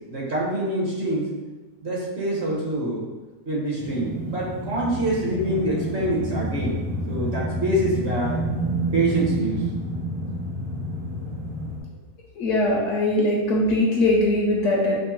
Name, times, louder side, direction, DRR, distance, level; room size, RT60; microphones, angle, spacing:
voice 1, 0.1-1.3 1.8-3.0 3.5-6.8 7.1-8.4 8.9-9.6, right 1 dB, 50° right, -5 dB, 1.0 m, -25 dB
sound 1, 3.8-11.8, right 1 dB, 90° right, 1.4 m, -29 dB
voice 2, 12.4-15.0, left 1 dB, 65° left, -2 dB, 0.8 m, -21 dB
5.7 x 2.1 x 2.9 m, 1.2 s
omnidirectional pair, 1.6 m